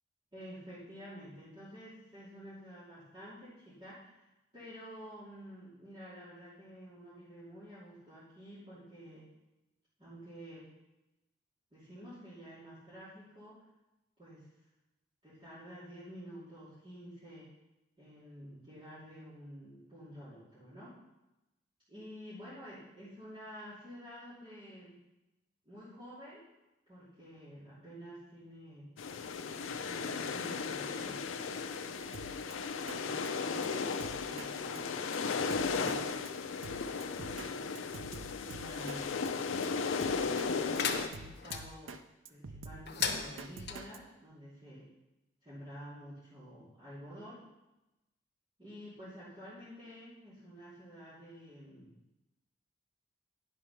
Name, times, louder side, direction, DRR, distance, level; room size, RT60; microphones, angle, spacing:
voice 1, 0.3-4.3 4.5-9.3 10.0-10.7 11.7-13.6 14.2-14.5 15.2-17.5 18.0-21.0 21.9-25.0 25.6-26.4 26.9-28.9 29.4-31.2 32.7-34.8 35.5-36.3 38.5-39.6 40.6-42.0 42.3-44.9 45.4-47.4 48.6-51.9, equal, 25° right, -13 dB, 2.8 m, -50 dB
sound 1, 29.0-41.1, left 5 dB, 85° left, 0.5 m, -36 dB
Drum kit, 32.1-32.5 32.9-33.0 33.3-33.4 33.6-33.7 34.0-34.5 34.8-34.9 35.1-35.2 35.5-36.0 36.3-36.4 36.6-37.5 37.8-39.0 39.3-39.4 39.6-39.7 40.0-40.5 40.8-42.0 42.3-44.0, right 3 dB, 85° right, 0.6 m, -47 dB
sound 2, 40.8-41.6 42.9-43.8, left 6 dB, 55° left, 0.8 m, -36 dB
9.9 x 5.5 x 5.8 m, 0.99 s
head